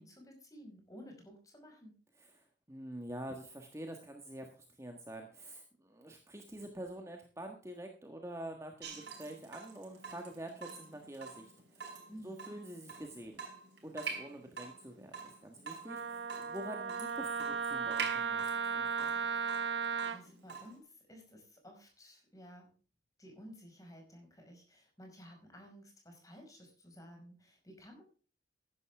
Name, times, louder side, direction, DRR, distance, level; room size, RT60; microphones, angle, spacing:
voice 1, 0.0-2.0 12.1-12.5 19.7-22.7 23.2-28.0, equal, 20° left, 2 dB, 5.5 m, -54 dB
voice 2, 2.3-11.9 12.2-13.4 13.8-19.2, right 1 dB, 15° right, 3 dB, 1.5 m, -46 dB
Water tap faucet / Drip, 8.8-20.8, right 5 dB, 65° right, 4.8 m, -46 dB
Wind instrument woodwind instrument, 15.9-20.2, right 6 dB, 80° right, 1.1 m, -35 dB
15.0 x 11.5 x 3.5 m, 0.39 s
head